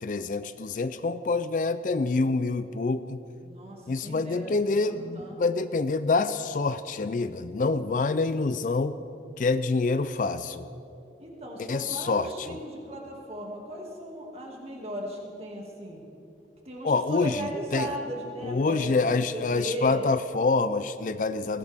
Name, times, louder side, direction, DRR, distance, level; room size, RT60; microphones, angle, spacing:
voice 1, 0.0-3.2 3.9-9.0 9.4-10.6 11.7-12.6 16.8-17.9 18.4-21.6, left 3 dB, 45° left, 13 dB, 0.4 m, -26 dB
voice 2, 3.4-5.6 11.2-16.0 16.6-20.0, right 1 dB, 35° right, -1 dB, 2.2 m, -37 dB
20.0 x 16.0 x 3.5 m, 2.7 s
head